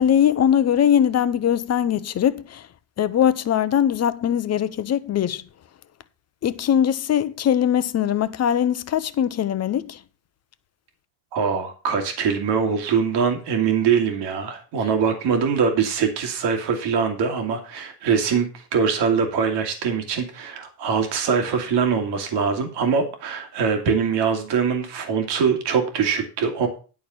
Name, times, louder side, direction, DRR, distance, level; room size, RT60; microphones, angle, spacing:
voice 1, 0.0-2.7 3.0-5.4 6.4-10.0, left 9 dB, 40° left, 0.6 m, -21 dB
voice 2, 11.3-26.7, right 6 dB, 75° right, 2.3 m, -23 dB
10.5 x 4.3 x 6.9 m
cardioid pair, 125°, 42 cm